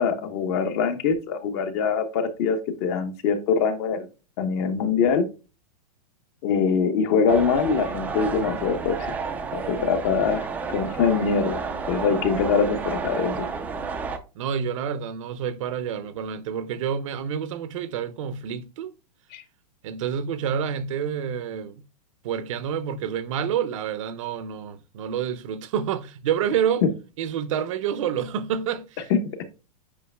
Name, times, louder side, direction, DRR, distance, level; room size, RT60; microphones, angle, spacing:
voice 1, 0.0-4.1 4.4-5.3 6.4-9.0 9.5-11.6 11.9-13.5 19.3-19.4 26.8-26.9 29.1-29.4, left 5 dB, 40° left, 1.0 m, -23 dB
sound 1, 7.3-14.2, right 5 dB, 10° right, 0.4 m, -31 dB
voice 2, 14.3-18.9 19.8-21.8 22.2-26.8 27.2-29.1, right 8 dB, 50° right, 0.7 m, -28 dB
8.4 x 5.1 x 2.2 m
supercardioid pair, 160°, 21 cm